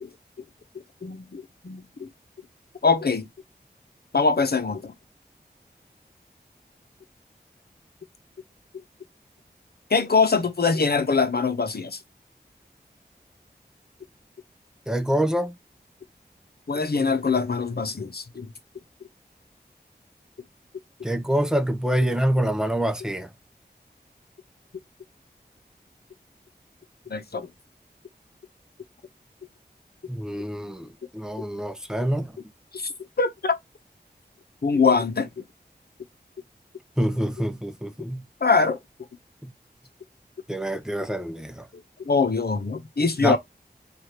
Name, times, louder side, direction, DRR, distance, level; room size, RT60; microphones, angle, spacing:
voice 1, 1.0-2.1 2.8-3.3 4.1-4.9 9.9-12.0 16.7-18.5 27.1-27.5 32.7-32.9 33.2-33.5 34.6-35.4 38.4-38.8 41.7-43.4, left 4 dB, 65° left, 0.8 m, -23 dB
voice 2, 14.9-15.5 21.0-23.3 30.1-30.9 31.1-32.3 37.0-38.2 39.4-39.5 40.5-41.6 43.2-43.4, right 1 dB, 5° right, 0.7 m, -26 dB
4.8 x 2.5 x 2.9 m
wide cardioid pair, 60°, 17 cm